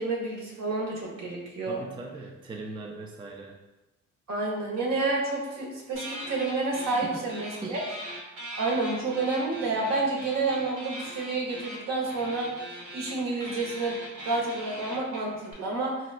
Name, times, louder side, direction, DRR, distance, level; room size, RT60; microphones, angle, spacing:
voice 1, 0.0-1.8 4.3-7.8 8.6-14.0 14.2-15.9, right 3 dB, 60° right, -2 dB, 1.0 m, -29 dB
voice 2, 1.7-3.6 7.0-7.3 7.6-7.8, right 2 dB, 15° right, 1 dB, 0.3 m, -39 dB
sound 1, 6.0-7.0 7.3-15.5, right 1 dB, 90° right, 1.1 m, -40 dB
4.0 x 2.2 x 2.4 m, 1.0 s
cardioid pair, 90°, 30 cm